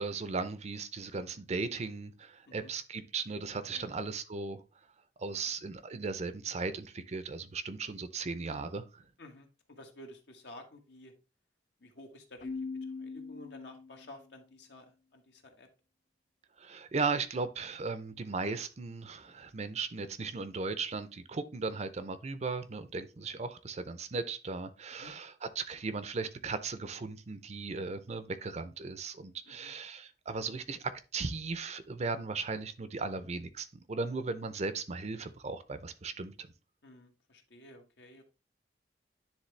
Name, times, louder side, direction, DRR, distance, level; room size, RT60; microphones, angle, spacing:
voice 1, 0.0-4.6 5.2-9.0 16.6-36.5, right 4 dB, 40° right, 0.6 m, -37 dB
voice 2, 3.5-3.9 9.2-11.1 11.8-15.7 25.0-25.1 29.5-29.7 34.0-34.2 36.8-38.2, left 1 dB, 70° left, 1.3 m, -52 dB
Keyboard (musical), 12.4-14.2, left 4 dB, 50° left, 0.3 m, -41 dB
10.0 x 3.5 x 3.3 m
head